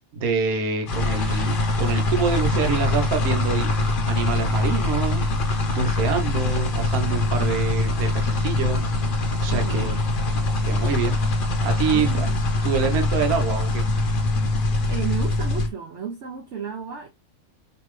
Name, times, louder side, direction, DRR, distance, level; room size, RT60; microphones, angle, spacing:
voice 1, 0.1-5.2 5.7-8.8 9.4-10.0 10.6-11.2 11.6-12.3 12.6-13.8, right 4 dB, 75° right, 1.4 m, -26 dB
sound 1, 0.9-15.7, left 2 dB, 45° left, 0.9 m, -23 dB
voice 2, 9.5-10.0 11.9-12.4 14.9-17.1, right 7 dB, 60° right, 0.8 m, -33 dB
5.2 x 2.9 x 3.2 m
omnidirectional pair, 1.5 m